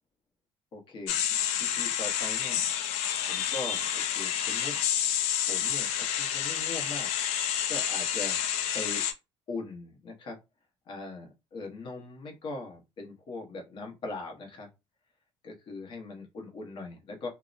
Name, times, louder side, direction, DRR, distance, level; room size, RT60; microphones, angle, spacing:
voice 1, 0.7-1.3 1.6-2.7 3.3-4.8 5.5-7.1 7.7-8.4 8.7-9.0 9.5-10.4 10.9-14.7 15.4-17.3, left 3 dB, 50° left, 1 dB, 0.9 m, -40 dB
sound 1, 1.1-9.1, left 10 dB, 85° left, 0.4 m, -29 dB
2.7 x 2.0 x 2.4 m, 0.25 s
cardioid pair, 135°, 11 cm